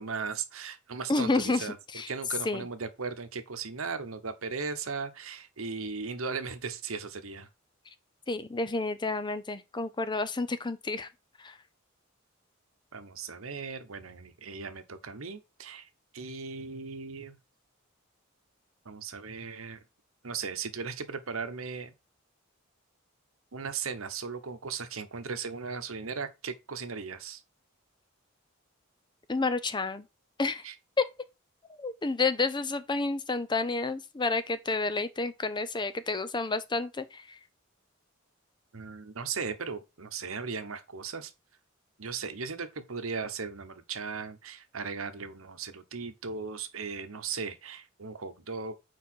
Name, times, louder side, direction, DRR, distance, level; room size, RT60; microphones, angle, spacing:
voice 1, 0.0-1.8 2.1-7.5 12.9-17.4 18.8-19.8 20.2-21.9 23.5-27.4 30.6-30.7 38.7-41.3 42.0-48.7, right 5 dB, 90° right, 1.0 m, -37 dB
voice 2, 1.1-1.7 1.9-2.1 2.5-2.6 8.3-11.1 11.4-11.6 29.3-30.0 30.4-30.6 31.0-31.1 31.8-37.4, left 3 dB, 20° left, 0.6 m, -30 dB
4.8 x 4.7 x 6.0 m
head